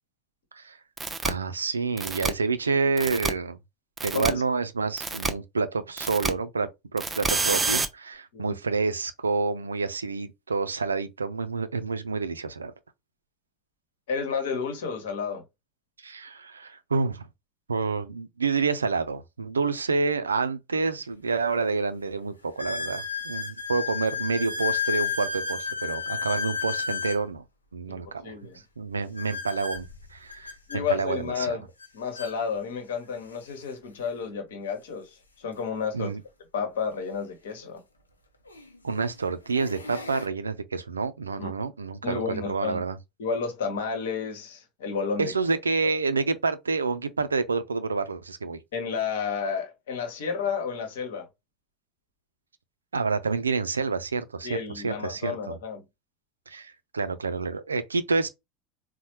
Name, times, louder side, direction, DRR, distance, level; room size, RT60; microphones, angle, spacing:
sound 1, 1.0-1.3 2.0-2.3 3.0-3.3 4.0-4.3 5.0-5.3 6.0-6.3 7.0-7.9, right 4 dB, 20° right, 0.5 m, -27 dB
voice 1, 1.2-3.6 4.0-12.7 16.0-17.3 17.7-27.4 27.7-28.3 28.8-31.6 35.9-36.2 38.8-43.0 45.2-48.6 52.9-55.6 56.5-58.3, right 4 dB, 80° right, 0.4 m, -28 dB
voice 2, 14.1-15.4 27.9-28.6 30.7-31.6 31.9-36.1 36.5-37.8 41.4-41.5 42.0-42.8 43.2-45.3 45.8-45.9 48.7-51.3 54.4-55.8, left 6 dB, 65° left, 1.0 m, -31 dB
sound 2, 20.9-21.0 21.6-21.7 22.6-27.2 29.2-30.8 31.8-31.9 32.2-32.3 33.1-33.2 35.4-35.5 37.6-37.7 38.5-38.8 39.3-40.3, left 6 dB, 80° left, 0.6 m, -32 dB
4.1 x 2.1 x 2.9 m
figure-of-eight pair, 75°, 0 cm